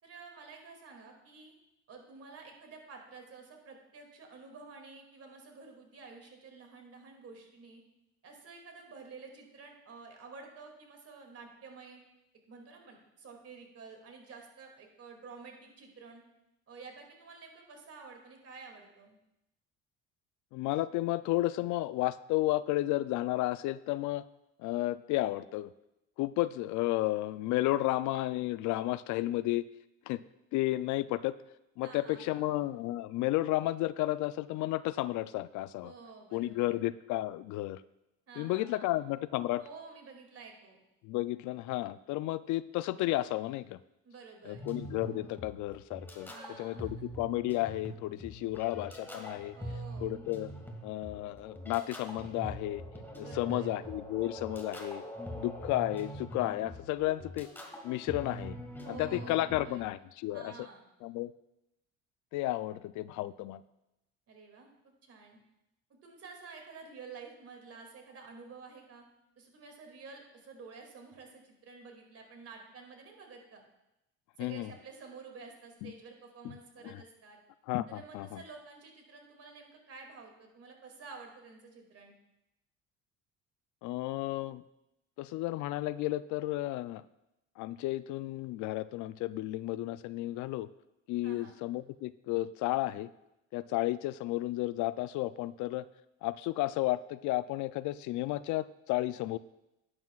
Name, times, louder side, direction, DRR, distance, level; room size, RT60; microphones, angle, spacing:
voice 1, 0.0-1.5 1.9-7.8 8.2-12.0 12.5-16.2 16.7-19.2 31.8-32.5 35.8-36.8 38.3-39.0 39.6-40.8 44.0-44.7 46.2-46.9 49.5-50.1 53.2-53.7 58.8-59.9 60.3-60.8 64.3-65.4 66.0-69.0 69.4-73.6 74.4-77.4 77.9-82.2 91.2-91.6, right 4 dB, 50° right, 2 dB, 2.4 m, -50 dB
voice 2, 20.5-24.2 24.6-25.7 26.2-29.6 30.1-30.2 30.5-31.4 31.8-35.9 36.3-37.8 38.4-39.6 41.0-43.8 44.4-46.3 46.6-49.5 50.0-50.5 50.8-52.8 53.2-55.0 55.4-57.5 57.8-58.6 58.9-60.5 61.0-61.3 62.3-63.6 74.4-74.7 75.8-75.9 76.4-76.6 76.8-77.0 77.7-78.4 83.8-84.6 85.2-87.0 87.6-90.7 91.1-93.1 93.5-95.9 96.2-99.4, left 16 dB, 70° left, 16 dB, 0.4 m, -32 dB
sound 1, 44.5-59.8, equal, 5° left, 2.0 m, -44 dB
11.5 x 9.5 x 2.4 m, 0.89 s
supercardioid pair, 80°, 31 cm